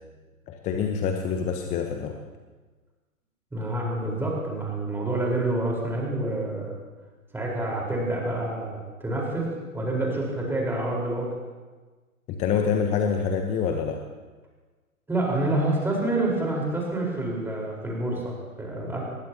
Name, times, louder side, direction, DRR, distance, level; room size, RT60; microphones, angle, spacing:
voice 1, 0.5-2.2 12.3-14.0, left 6 dB, 15° left, 5 dB, 0.9 m, -26 dB
voice 2, 3.5-6.7 7.3-9.5 9.7-11.3 15.1-19.0, right 2 dB, 5° right, -3 dB, 4.3 m, -27 dB
23.0 x 20.5 x 2.9 m, 1.3 s
figure-of-eight pair, 115°, 43 cm